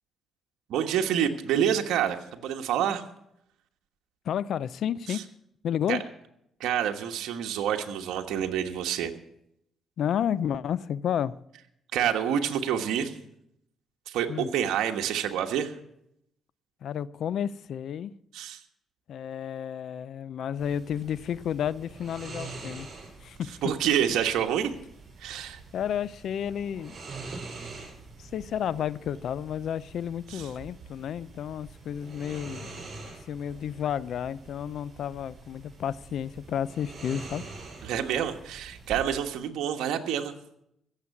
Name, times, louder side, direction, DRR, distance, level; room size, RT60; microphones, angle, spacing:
voice 1, 0.7-3.0 5.1-5.2 5.9-6.0 6.6-9.1 11.9-13.1 14.1-15.7 18.3-18.6 23.6-24.7 25.2-25.6 30.3-30.4 37.8-40.3, right 9 dB, 85° right, 1.2 m, -27 dB
voice 2, 4.2-5.2 5.6-6.0 10.0-11.4 14.3-14.5 16.8-18.1 19.1-22.9 23.2-23.6 25.7-27.0 28.2-32.7 33.3-37.4, left 9 dB, 70° left, 0.5 m, -31 dB
sound 1, 20.6-39.0, right 3 dB, 50° right, 7.4 m, -45 dB
15.5 x 7.5 x 8.4 m
cardioid pair, 90°, 0 cm